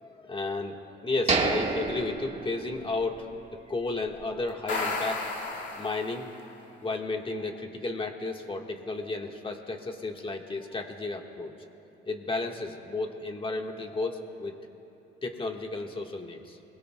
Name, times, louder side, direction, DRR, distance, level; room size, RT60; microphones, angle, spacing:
voice 1, 0.0-6.3 6.8-11.5 12.1-14.5 15.2-16.6, left 3 dB, 25° left, 2 dB, 1.6 m, -33 dB
sound 1, 1.3-3.2 3.5-3.6 4.1-4.3, right 3 dB, 35° right, 1.7 m, -29 dB
sound 2, 4.5-6.5, left 3 dB, 70° left, 2.2 m, -33 dB
27.5 x 21.5 x 2.3 m, 3.0 s
cardioid pair, 90°, 20 cm